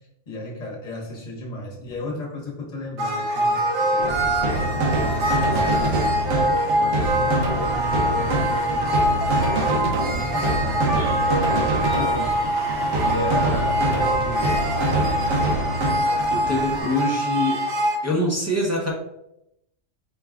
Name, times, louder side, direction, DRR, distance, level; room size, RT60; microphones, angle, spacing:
voice 1, 0.3-9.6 9.8-15.3, left 2 dB, 35° left, -2 dB, 1.0 m, -35 dB
sound 1, 3.0-18.0, equal, 65° right, 1.2 m, -24 dB
sound 2, 4.0-16.8, right 2 dB, 85° right, 1.2 m, -25 dB
voice 2, 16.3-17.6 18.0-18.9, left 1 dB, 20° right, -4 dB, 0.4 m, -24 dB
4.6 x 2.3 x 3.5 m, 0.83 s
omnidirectional pair, 1.4 m